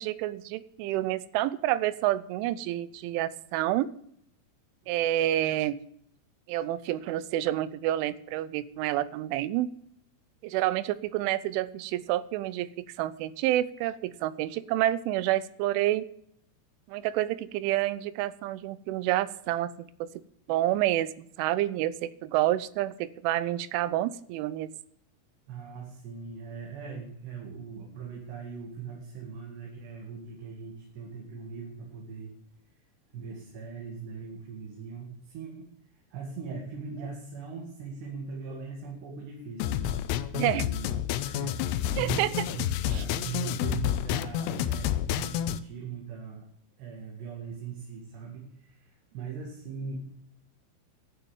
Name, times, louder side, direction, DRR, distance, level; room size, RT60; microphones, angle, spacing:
voice 1, 0.0-3.9 4.9-5.8 6.5-9.7 10.4-12.7 13.0-16.0 16.9-19.7 20.0-20.2 20.5-21.1 21.4-24.7 40.3-40.7 42.0-42.3 42.9-43.0, right 14 dB, 85° right, 17 dB, 3.1 m, -28 dB
voice 2, 25.5-32.3 33.1-40.0 40.3-40.9 41.2-46.5 46.8-50.1, right 5 dB, 65° right, -1 dB, 4.1 m, -40 dB
sound 1, 39.6-45.6, left 11 dB, 90° left, 2.3 m, -29 dB
11.0 x 9.5 x 7.3 m, 0.67 s
omnidirectional pair, 5.6 m